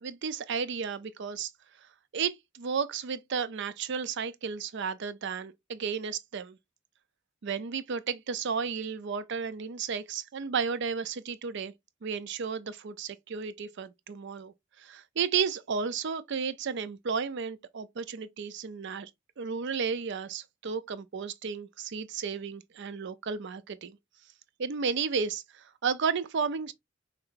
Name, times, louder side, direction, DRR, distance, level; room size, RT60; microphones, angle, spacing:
voice 1, 0.0-1.5 2.1-6.6 7.4-11.7 12.0-19.1 19.4-24.0 24.6-26.7, right 6 dB, 60° right, 0.5 m, -33 dB
5.7 x 3.3 x 2.5 m
head